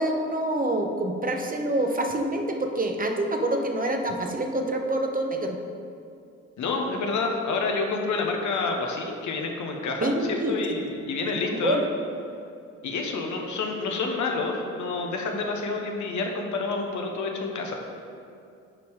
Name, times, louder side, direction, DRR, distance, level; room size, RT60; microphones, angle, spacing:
voice 1, 0.0-5.6 10.0-10.5 10.9-11.0 11.6-11.9, right 1 dB, 25° right, 3 dB, 1.0 m, -26 dB
voice 2, 6.6-11.8 12.8-17.7, left 3 dB, 65° left, 2 dB, 1.2 m, -28 dB
9.2 x 4.6 x 4.8 m, 2.5 s
hypercardioid pair, 55°, 32 cm